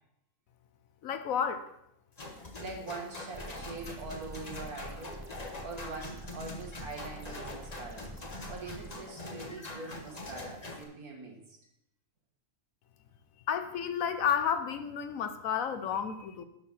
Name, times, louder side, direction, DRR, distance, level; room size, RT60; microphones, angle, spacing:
voice 1, 1.0-1.6 13.5-16.4, left 8 dB, 70° left, 9 dB, 1.1 m, -31 dB
sound 1, 2.2-10.8, left 2 dB, 30° left, 1.2 m, -44 dB
voice 2, 2.6-5.2 5.6-8.2 8.5-11.6, right 3 dB, 75° right, 1 dB, 2.2 m, -43 dB
sound 2, 3.3-8.9, right 1 dB, 20° right, 0.6 m, -47 dB
11.5 x 4.7 x 5.5 m, 0.80 s
omnidirectional pair, 1.6 m